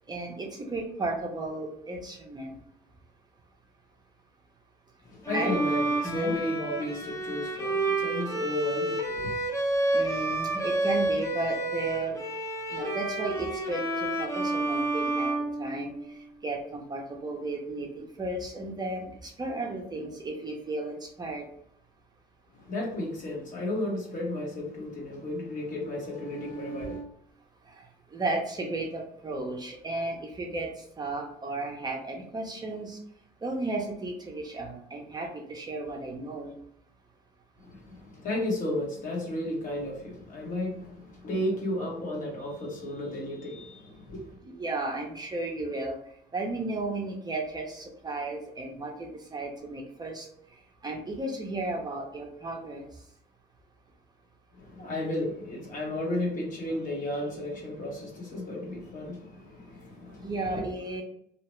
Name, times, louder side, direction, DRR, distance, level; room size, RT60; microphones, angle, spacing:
voice 1, 0.1-2.6 5.3-5.6 6.0-6.4 9.9-12.2 12.7-15.3 15.6-15.9 16.4-21.4 27.8-27.9 28.1-30.7 31.0-33.0 33.4-36.6 44.4-46.0 46.3-50.3 50.8-52.9 60.2-61.0, right 2 dB, 25° right, 1 dB, 0.5 m, -34 dB
voice 2, 5.0-9.4 22.6-27.1 37.6-44.4 54.5-60.6, left 1 dB, 50° left, -2 dB, 1.1 m, -33 dB
Bowed string instrument, 5.2-16.2, right 2 dB, 20° left, 0.7 m, -30 dB
2.7 x 2.1 x 3.0 m, 0.69 s
cardioid pair, 110°, 17 cm